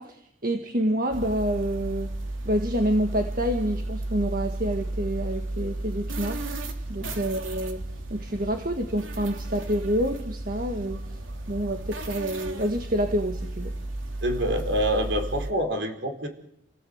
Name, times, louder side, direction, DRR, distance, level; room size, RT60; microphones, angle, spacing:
voice 1, 0.0-2.1 2.4-6.4 6.9-7.8 8.1-11.0 11.5-13.7, equal, 45° right, 5 dB, 1.7 m, -27 dB
sound 1, 1.1-15.5, right 2 dB, 85° right, 3.2 m, -33 dB
voice 2, 14.2-16.3, equal, 60° right, 4 dB, 4.5 m, -26 dB
29.5 x 17.0 x 8.1 m, 0.74 s
head